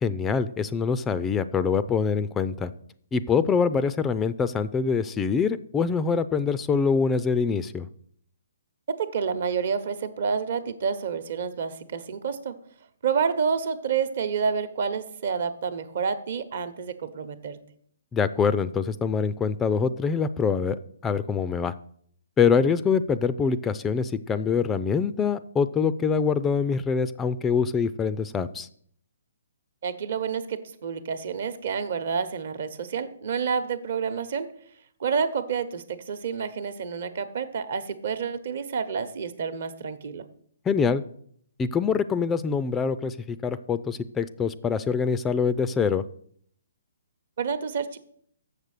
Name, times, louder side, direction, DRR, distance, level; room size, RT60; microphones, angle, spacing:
voice 1, 0.0-2.7 3.1-7.9 18.1-20.8 21.0-21.7 22.4-28.7 40.7-41.0 41.6-46.0, left 5 dB, 15° left, 14 dB, 0.3 m, -24 dB
voice 2, 9.0-12.5 13.0-17.6 29.8-34.5 35.0-40.2 47.4-48.0, right 6 dB, 60° right, 10 dB, 1.0 m, -29 dB
6.9 x 6.6 x 6.6 m, 0.63 s
hypercardioid pair, 145°, 0 cm